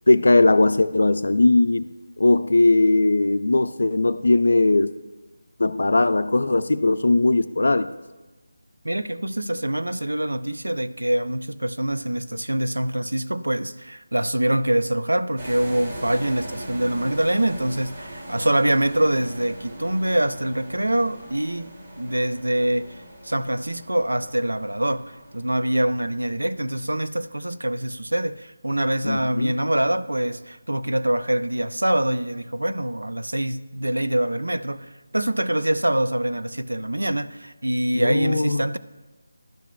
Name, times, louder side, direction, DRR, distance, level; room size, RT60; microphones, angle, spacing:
voice 1, 0.1-1.9 2.2-4.9 5.6-7.9 29.0-29.5 37.9-38.6, left 2 dB, 65° left, 13 dB, 0.4 m, -19 dB
voice 2, 8.8-21.7 22.0-38.8, right 1 dB, 90° right, 12 dB, 0.4 m, -24 dB
sound 1, 15.4-27.4, right 1 dB, 35° right, 1.6 m, -40 dB
11.5 x 5.1 x 2.2 m, 1.2 s
figure-of-eight pair, 165°, 0 cm